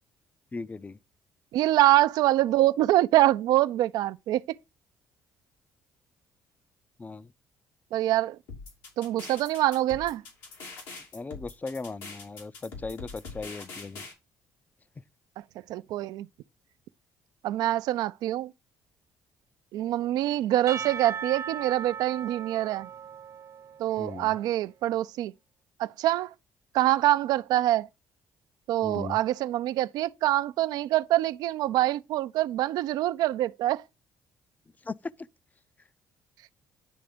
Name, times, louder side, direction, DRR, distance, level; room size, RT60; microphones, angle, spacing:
voice 1, 0.5-1.0 7.0-7.3 11.1-14.0 24.0-24.3 28.8-29.2 34.8-35.1, left 3 dB, 25° left, 0.5 m, -37 dB
voice 2, 1.5-4.4 7.9-8.4 9.0-10.2 15.7-16.3 17.4-18.5 19.7-22.9 23.8-25.3 25.8-26.3 26.7-27.9 28.7-33.8, right 14 dB, 75° right, 0.4 m, -25 dB
sound 1, 8.5-14.1, left 4 dB, 85° left, 3.1 m, -43 dB
Percussion / Church bell, 20.7-24.3, right 7 dB, 45° right, 0.8 m, -38 dB
10.0 x 3.4 x 5.0 m
supercardioid pair, 70°, 7 cm